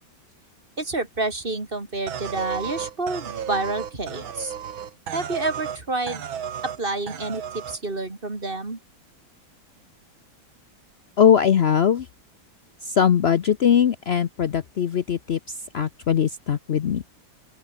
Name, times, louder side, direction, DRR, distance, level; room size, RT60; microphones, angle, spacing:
voice 1, 0.8-4.5 5.1-6.2 6.6-8.8, right 2 dB, 25° right, 3.1 m, -29 dB
sound 1, 2.1-5.8 6.1-6.8 7.1-7.8, right 8 dB, 90° right, 2.4 m, -33 dB
voice 2, 11.2-12.1 12.8-15.4 15.7-17.0, left 8 dB, 80° left, 0.5 m, -20 dB
open air
omnidirectional pair, 2.1 m